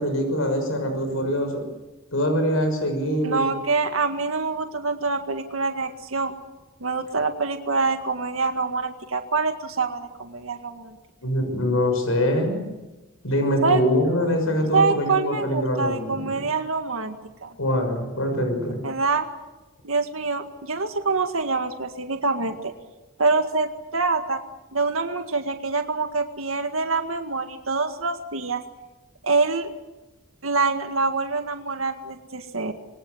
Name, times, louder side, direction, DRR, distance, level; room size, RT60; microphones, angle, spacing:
voice 1, 0.0-1.6 2.1-3.5 11.2-12.7 13.2-16.5 17.6-18.8, equal, 80° left, 5 dB, 6.2 m, -24 dB
voice 2, 3.2-6.3 6.8-11.0 13.6-13.8 14.7-17.2 17.4-17.5 18.8-19.3 19.8-22.7 23.2-24.4 24.7-28.6 29.2-29.7 30.4-32.7, right 4 dB, 80° right, 6 dB, 1.9 m, -25 dB
27.0 x 23.5 x 8.0 m, 1.1 s
head